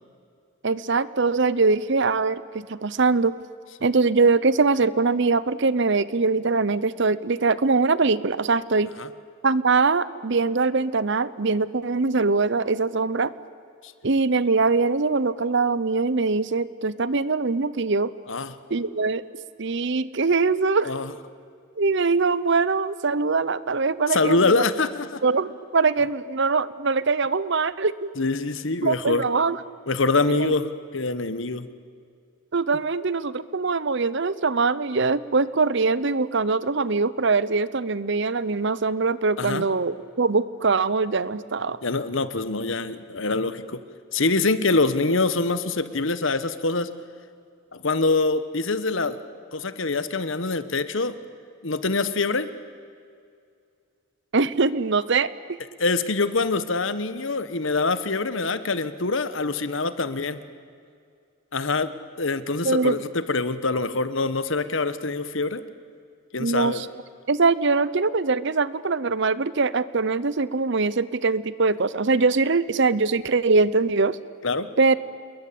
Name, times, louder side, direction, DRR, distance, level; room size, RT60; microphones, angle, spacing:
voice 1, 0.6-3.3 3.8-8.9 9.4-13.3 14.0-18.1 18.7-19.2 19.6-20.9 21.8-24.7 25.2-28.1 28.8-29.6 30.3-30.5 32.5-41.8 54.3-55.3 62.6-63.0 66.4-66.9 67.3-74.2 74.8-75.0, right 4 dB, 60° right, 17 dB, 0.8 m, -22 dB
voice 2, 24.1-25.2 28.2-29.2 29.9-31.7 39.4-39.7 41.8-43.8 44.1-46.9 47.7-49.2 49.5-51.1 51.6-52.5 55.8-60.4 61.5-61.9 62.2-65.6 66.3-66.8 74.4-74.7, left 3 dB, 65° left, 13 dB, 1.3 m, -24 dB
28.0 x 22.0 x 8.6 m, 2.3 s
head